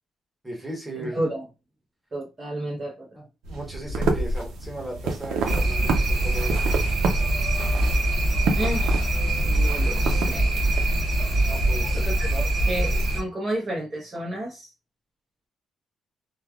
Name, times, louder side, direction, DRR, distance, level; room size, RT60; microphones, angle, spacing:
voice 1, 0.4-1.2 3.2-6.8 11.4-12.5, right 1 dB, 10° right, -1 dB, 1.3 m, -37 dB
voice 2, 1.0-1.4 2.1-3.1 8.6-9.1 9.4-10.5 11.4-11.5 11.9-12.3 12.7-14.7, right 1 dB, 35° right, -3 dB, 0.9 m, -31 dB
sound 1, 3.4-10.8, right 3 dB, 85° right, 0.6 m, -29 dB
sound 2, 5.5-13.2, right 1 dB, 60° right, 1.0 m, -23 dB
3.2 x 2.3 x 2.3 m, 0.28 s
cardioid pair, 90°, 0 cm